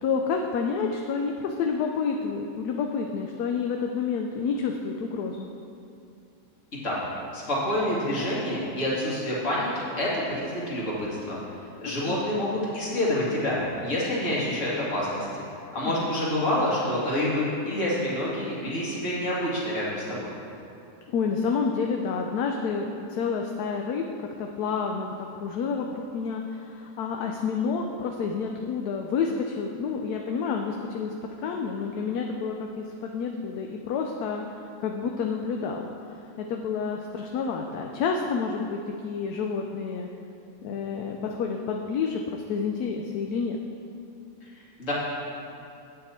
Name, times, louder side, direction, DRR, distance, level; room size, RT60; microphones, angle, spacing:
voice 1, 0.0-5.5 12.1-12.2 15.8-16.1 21.1-34.4 34.8-35.9 36.4-40.1 40.6-43.6, left 5 dB, 75° left, 2 dB, 1.1 m, -29 dB
voice 2, 7.3-11.4 11.8-15.3 15.7-20.3 44.8-44.9, left 1 dB, 45° left, -7 dB, 2.4 m, -27 dB
8.8 x 8.4 x 4.3 m, 2.6 s
omnidirectional pair, 1.8 m